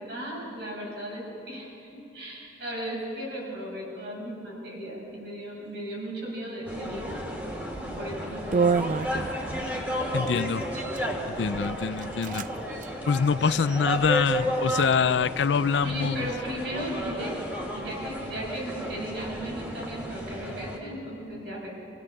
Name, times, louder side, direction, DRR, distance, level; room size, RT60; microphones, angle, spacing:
voice 1, 0.0-7.2 7.9-9.1 15.8-17.4 17.7-21.7, equal, 65° right, -4 dB, 6.5 m, -36 dB
sound 1, 6.6-20.8, equal, 10° right, 2.5 m, -33 dB
sound 2, 7.7-7.9 8.5-9.7 10.6-11.1 11.6-11.7 12.0-12.5 12.8-12.9 13.4-14.1, right 4 dB, 45° right, 0.4 m, -28 dB
voice 2, 10.1-10.6 11.4-12.4 13.1-16.3, left 5 dB, 85° left, 16 dB, 0.5 m, -25 dB
26.5 x 16.0 x 6.6 m, 2.9 s
head